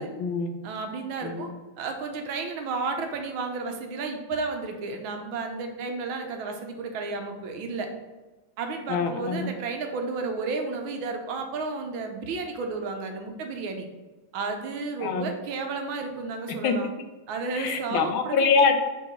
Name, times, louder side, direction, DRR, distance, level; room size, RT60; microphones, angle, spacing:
voice 1, 0.0-0.6 1.2-1.6 8.9-9.5 15.0-15.3 16.6-16.8 17.5-18.7, left 5 dB, 85° left, 6 dB, 1.5 m, -25 dB
voice 2, 0.6-1.5 1.8-7.9 8.6-13.8 14.3-16.9 17.3-18.5, right 4 dB, 85° right, 4 dB, 1.6 m, -32 dB
4.6 x 4.5 x 5.2 m, 1.2 s
omnidirectional pair, 2.2 m